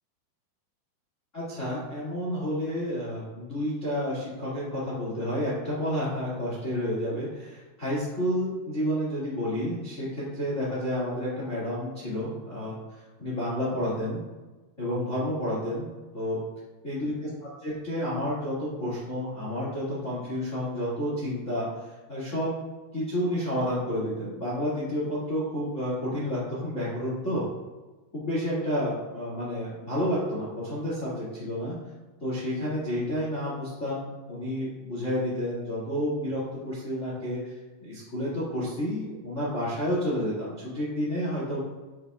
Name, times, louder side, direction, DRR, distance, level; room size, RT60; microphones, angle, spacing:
voice 1, 1.3-14.2 14.8-15.9 16.1-16.4 16.8-17.3 17.6-22.5 22.9-27.4 28.1-31.7 32.2-37.5 37.8-41.6, equal, 55° left, -6 dB, 0.8 m, -30 dB
8.4 x 8.2 x 2.4 m, 1.2 s
omnidirectional pair, 5.3 m